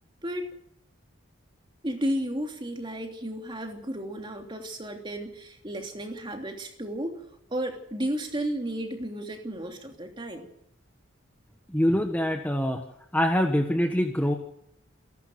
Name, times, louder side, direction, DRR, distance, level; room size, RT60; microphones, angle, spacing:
voice 1, 0.2-0.5 1.8-7.2 7.5-10.5, right 1 dB, 25° right, 3 dB, 3.0 m, -33 dB
voice 2, 11.7-12.8 13.1-14.3, equal, 10° left, 4 dB, 1.4 m, -24 dB
28.0 x 12.0 x 8.0 m, 0.75 s
head